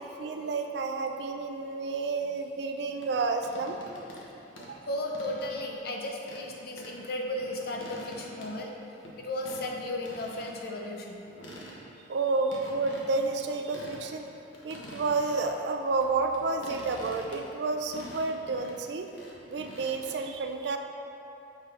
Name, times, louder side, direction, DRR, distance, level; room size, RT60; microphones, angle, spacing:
voice 1, 0.0-3.8 4.7-4.8 12.1-14.2 14.6-19.1 19.5-20.8, right 3 dB, 60° right, 4 dB, 0.4 m, -30 dB
sound 1, 3.0-4.3 4.6-5.7 6.2-6.5 6.8-7.0 7.3-9.2 9.4-9.7 10.0-10.5 10.8-10.9 11.3-12.0 12.5-14.0 14.3-15.5 16.0-20.1, left 1 dB, 80° left, 1.0 m, -46 dB
voice 2, 4.8-8.7 9.2-11.2, left 1 dB, 50° left, 1 dB, 0.6 m, -35 dB
6.6 x 3.3 x 4.8 m, 2.8 s
head